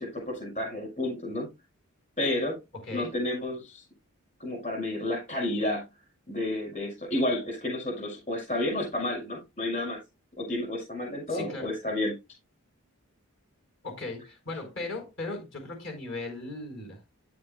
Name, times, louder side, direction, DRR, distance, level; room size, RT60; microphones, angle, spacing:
voice 1, 0.0-1.5 2.2-2.6 2.9-3.8 4.4-5.9 6.3-10.0 10.4-12.1, left 1 dB, 35° left, 6.1 m, -31 dB
voice 2, 2.7-3.1 11.3-11.7 13.8-17.0, left 2 dB, 55° left, 4.3 m, -37 dB
9.9 x 9.5 x 2.2 m
head